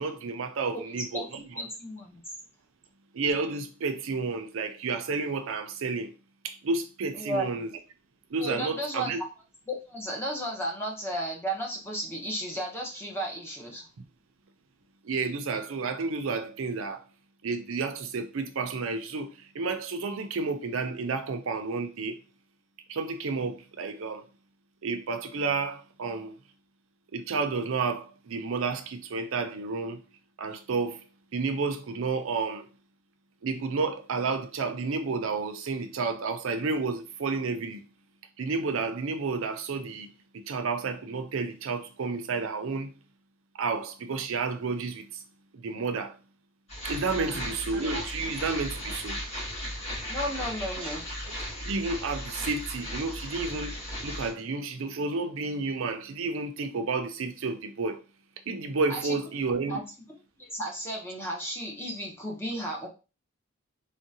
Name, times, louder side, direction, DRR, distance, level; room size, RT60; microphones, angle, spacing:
voice 1, 0.0-1.4 3.1-6.1 6.4-7.7 8.3-9.2 14.0-14.1 15.0-17.0 17.4-22.2 22.9-24.2 24.8-26.3 27.1-30.0 30.4-31.0 31.3-32.7 33.4-37.8 38.4-40.1 40.5-42.9 43.6-45.2 45.5-46.1 46.8-49.2 50.8-50.9 51.6-53.7 54.0-58.0 58.5-59.8, right 4 dB, 65° right, 0.5 m, -31 dB
voice 2, 1.5-2.2 7.1-7.6 8.4-9.1 9.7-13.9 47.1-47.5 50.1-51.1 58.9-59.2 59.7-59.9 60.4-62.9, right 1 dB, 10° left, 0.7 m, -34 dB
sound 1, 46.7-54.3, equal, 30° left, 1.4 m, -36 dB
3.6 x 2.2 x 2.7 m
head